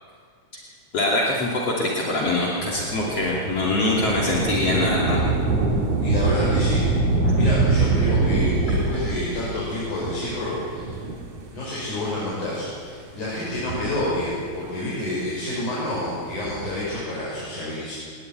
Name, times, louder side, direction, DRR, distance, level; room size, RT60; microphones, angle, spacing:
voice 1, 0.9-5.2 7.2-7.4, left 2 dB, 55° left, -3 dB, 3.8 m, -23 dB
Thunder / Rain, 2.6-11.6 12.3-12.4 13.4-14.6 16.2-16.9, right 3 dB, 85° right, 4.1 m, -24 dB
voice 2, 6.0-6.9 7.3-11.0 11.5-17.9, left 1 dB, 85° left, -8 dB, 8.1 m, -29 dB
22.0 x 20.0 x 9.6 m, 2.1 s
omnidirectional pair, 3.4 m